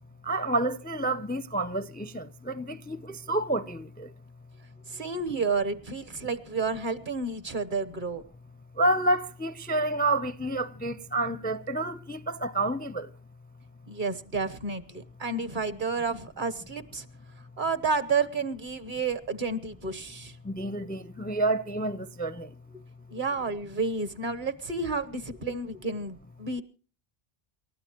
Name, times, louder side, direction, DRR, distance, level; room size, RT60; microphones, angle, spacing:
voice 1, 0.2-4.1 8.8-13.1 20.4-22.5, right 2 dB, 10° left, 0.5 m, -29 dB
voice 2, 4.9-8.2 13.9-17.1 17.6-20.4 23.1-26.6, right 4 dB, 50° right, 1.3 m, -30 dB
28.5 x 13.0 x 3.0 m
omnidirectional pair, 1.1 m